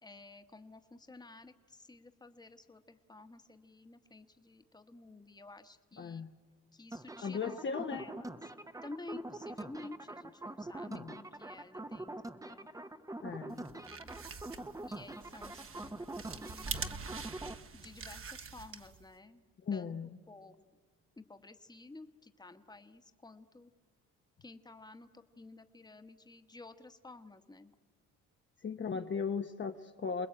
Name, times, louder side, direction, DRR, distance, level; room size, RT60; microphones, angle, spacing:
voice 1, 0.0-6.2 6.7-8.2 8.8-12.7 13.2-14.1 14.8-17.1 17.7-20.8 21.2-23.7 24.4-27.7 28.9-29.1, left 2 dB, 15° left, 9 dB, 1.3 m, -52 dB
voice 2, 6.0-6.3 7.2-8.0 10.9-11.1 13.2-13.7 19.6-20.1 28.6-30.3, left 5 dB, 40° left, 5 dB, 1.0 m, -37 dB
sound 1, 6.9-17.6, right 2 dB, 10° right, 0.9 m, -44 dB
sound 2, 13.6-19.1, right 5 dB, 45° right, 1.5 m, -44 dB
28.0 x 20.5 x 8.8 m, 1.5 s
cardioid pair, 90°, 30 cm